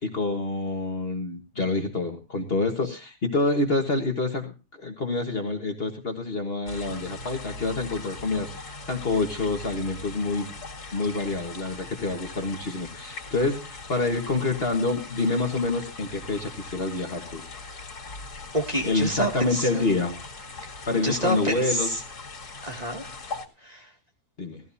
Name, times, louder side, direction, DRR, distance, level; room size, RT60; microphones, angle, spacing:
voice 1, 0.0-10.5 10.9-17.4 18.8-20.1 20.9-21.9 24.4-24.6, left 3 dB, 40° left, 4 dB, 1.7 m, -27 dB
sound 1, 6.7-23.5, left 3 dB, 80° left, 2.7 m, -40 dB
voice 2, 18.5-20.0 20.9-22.0 22.6-23.1 23.6-23.9, right 1 dB, 25° right, 1 dB, 2.3 m, -28 dB
18.5 x 14.5 x 2.7 m, 0.30 s
omnidirectional pair, 1.7 m